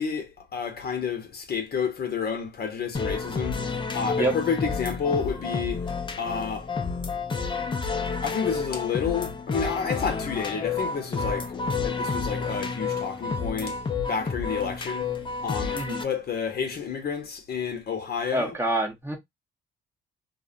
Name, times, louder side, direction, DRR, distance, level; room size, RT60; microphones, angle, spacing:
voice 1, 0.0-3.6 3.9-5.9 6.2-6.7 8.2-13.8 14.1-15.1 15.4-18.5, left 6 dB, 50° left, 0.8 m, -30 dB
sound 1, 2.9-16.0, left 4 dB, 25° left, 0.5 m, -30 dB
voice 2, 18.3-19.2, right 1 dB, 10° right, 0.8 m, -26 dB
2.6 x 2.1 x 2.5 m
cardioid pair, 90°, 20 cm